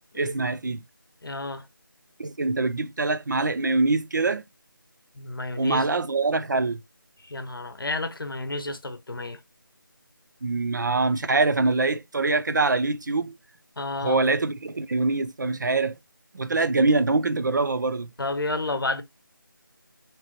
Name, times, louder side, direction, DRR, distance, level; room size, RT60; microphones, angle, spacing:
voice 1, 0.2-0.8 2.2-4.4 5.6-6.8 10.4-13.3 14.0-16.0 16.3-18.1, right 3 dB, 60° right, 0.4 m, -24 dB
voice 2, 1.2-1.7 5.2-5.9 7.2-9.4 13.8-14.2 18.2-19.0, left 2 dB, 75° left, 0.7 m, -31 dB
2.9 x 2.1 x 2.9 m
figure-of-eight pair, 170°, 12 cm